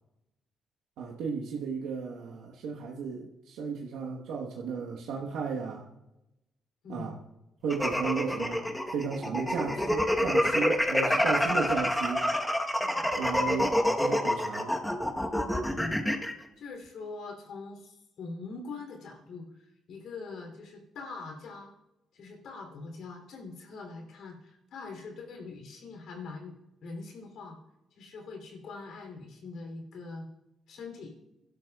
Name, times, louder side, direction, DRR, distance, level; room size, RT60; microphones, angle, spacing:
voice 1, 1.0-5.9 6.9-7.2 7.6-12.3 13.2-14.7, right 5 dB, 90° right, -3 dB, 1.2 m, -34 dB
sound 1, 7.7-16.3, left 1 dB, 10° left, 1.1 m, -27 dB
voice 2, 15.7-16.0 16.6-21.7 22.1-26.6 26.8-27.6 28.0-30.3 30.7-31.1, left 3 dB, 75° left, 3 dB, 3.0 m, -43 dB
28.5 x 12.0 x 2.3 m, 0.95 s
cardioid pair, 90°, 0 cm